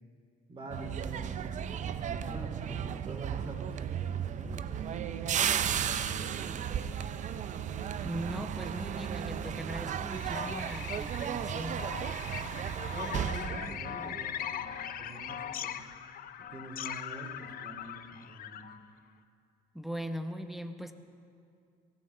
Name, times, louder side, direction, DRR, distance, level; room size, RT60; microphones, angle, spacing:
voice 1, 0.5-5.2 5.6-7.1 12.9-15.7 16.4-18.6, right 1 dB, 30° right, 2 dB, 2.9 m, -46 dB
sound 1, 0.7-14.7 15.0-15.3, right 8 dB, 45° right, 0.6 m, -35 dB
sound 2, 4.8-10.8, right 7 dB, 90° right, 1.9 m, -46 dB
voice 2, 8.0-11.8 19.7-20.9, equal, ahead, 8 dB, 0.9 m, -39 dB
sound 3, 10.1-18.8, left 10 dB, 60° left, 0.7 m, -40 dB
23.0 x 17.5 x 3.4 m, 2.4 s
cardioid pair, 110°, 17 cm